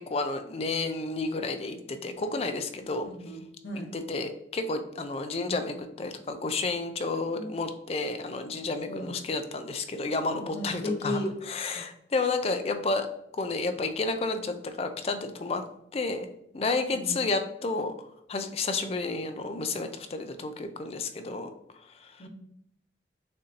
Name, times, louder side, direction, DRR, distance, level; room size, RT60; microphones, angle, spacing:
voice 1, 0.0-3.1 3.9-13.1 13.3-15.7 15.9-16.3 16.5-22.2, left 3 dB, 35° left, 7 dB, 0.4 m, -31 dB
voice 2, 3.0-3.9 7.3-7.5 8.9-9.2 10.5-11.3 16.9-17.2 22.2-22.3, left 1 dB, 75° left, 1 dB, 1.0 m, -34 dB
6.5 x 2.6 x 2.8 m, 0.76 s
head